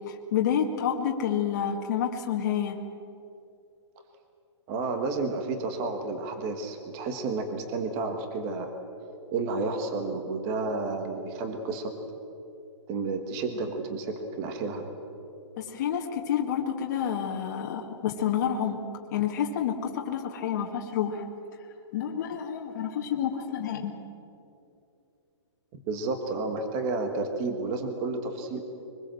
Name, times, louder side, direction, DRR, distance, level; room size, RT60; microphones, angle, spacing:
voice 1, 0.1-2.8 15.6-18.8 19.1-21.2 21.9-23.9, left 8 dB, 35° left, 1 dB, 1.8 m, -29 dB
voice 2, 4.7-8.8 9.3-11.9 12.9-14.9 25.7-28.6, right 3 dB, 20° right, 6 dB, 1.5 m, -31 dB
23.5 x 21.0 x 7.8 m, 2.7 s
hypercardioid pair, 170°, 15 cm